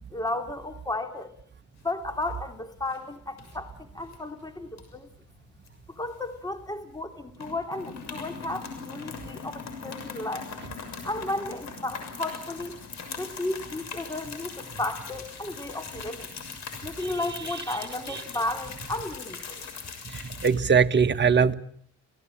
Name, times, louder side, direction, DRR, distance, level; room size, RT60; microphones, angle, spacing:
voice 1, 0.1-1.4 1.8-5.1 6.0-10.5 11.0-12.7 13.2-16.3 16.8-19.6, left 2 dB, 15° left, 3.0 m, -33 dB
sound 1, 1.8-2.5 2.8-3.0 3.4-4.2 4.7-6.7 6.9-7.1 7.3-20.5, left 5 dB, 65° left, 6.8 m, -40 dB
voice 2, 20.4-21.5, right 6 dB, 35° right, 1.4 m, -21 dB
26.5 x 18.0 x 8.8 m
cardioid pair, 90°, 30 cm